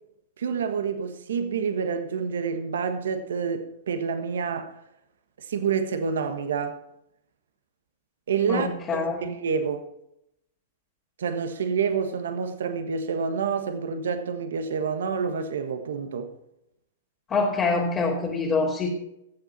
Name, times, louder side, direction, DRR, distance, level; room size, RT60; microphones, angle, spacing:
voice 1, 0.4-4.7 5.4-6.8 8.3-9.8 11.2-16.3, right 6 dB, 80° right, 1.4 m, -28 dB
voice 2, 8.5-9.3 17.3-18.9, left 4 dB, 25° left, 2.6 m, -25 dB
15.5 x 7.5 x 4.3 m
hypercardioid pair, 125°, 0 cm